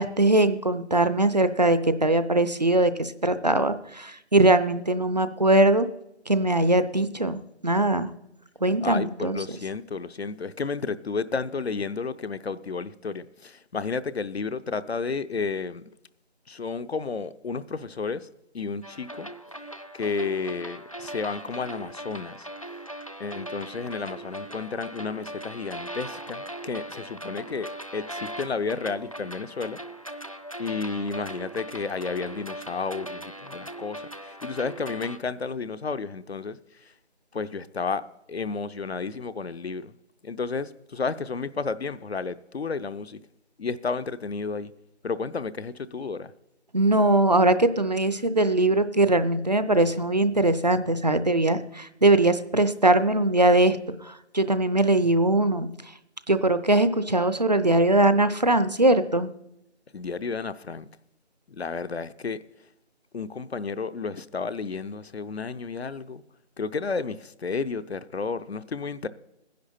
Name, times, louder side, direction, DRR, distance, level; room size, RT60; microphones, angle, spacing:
voice 1, 0.0-5.9 6.3-8.1 8.6-9.4 46.7-55.7 56.3-59.3, right 2 dB, 40° right, 0.6 m, -21 dB
voice 2, 8.8-15.8 16.5-18.3 18.5-19.3 19.9-22.5 23.2-29.8 30.6-36.6 37.3-38.0 38.3-39.9 40.2-43.2 43.6-44.7 45.0-46.3 59.9-60.9 61.5-62.4 63.1-66.2 66.6-69.1, left 4 dB, 65° left, 0.7 m, -32 dB
sound 1, 18.8-35.2, right 1 dB, 30° left, 0.5 m, -39 dB
17.0 x 10.5 x 4.3 m
figure-of-eight pair, 165°, 34 cm